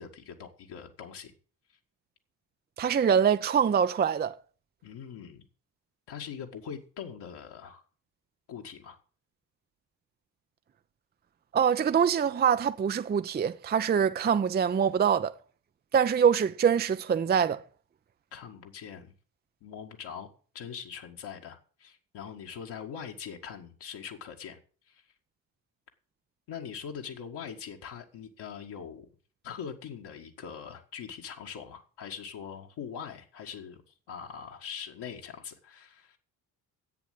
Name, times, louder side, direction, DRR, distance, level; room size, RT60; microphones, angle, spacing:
voice 1, 0.0-1.3 4.8-5.5 6.1-7.8 8.5-9.0 18.3-19.1 19.6-20.3 20.5-24.6 24.9-25.0 26.5-29.1 29.4-33.8 34.1-36.2, left 7 dB, 55° left, 2.0 m, -42 dB
voice 2, 2.8-4.4 11.5-15.3 15.9-17.6, right 7 dB, 20° right, 0.6 m, -24 dB
10.5 x 8.5 x 7.8 m
figure-of-eight pair, 50°, 49 cm